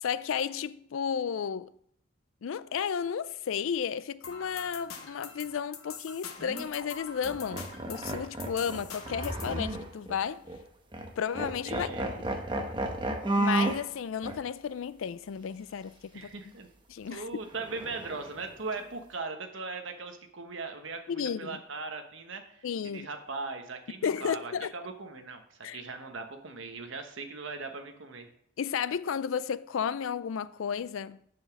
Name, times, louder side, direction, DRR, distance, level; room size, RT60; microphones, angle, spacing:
voice 1, 0.0-1.7 2.4-10.4 11.2-11.9 13.4-16.3 16.9-17.3 21.1-21.6 22.6-23.1 24.0-24.7 25.6-25.8 28.6-31.2, left 7 dB, 70° left, 0.4 m, -33 dB
sound 1, 4.2-9.6, left 6 dB, 85° left, 1.1 m, -45 dB
sound 2, 6.4-6.7 7.2-10.2 10.5-10.6 10.9-11.1 11.4-13.8 14.2-14.4 17.5-18.5, right 2 dB, 20° right, 1.0 m, -32 dB
voice 2, 11.6-12.1 16.1-16.7 17.1-22.7 22.9-28.3, right 3 dB, 60° right, 1.1 m, -39 dB
7.0 x 6.5 x 5.8 m
head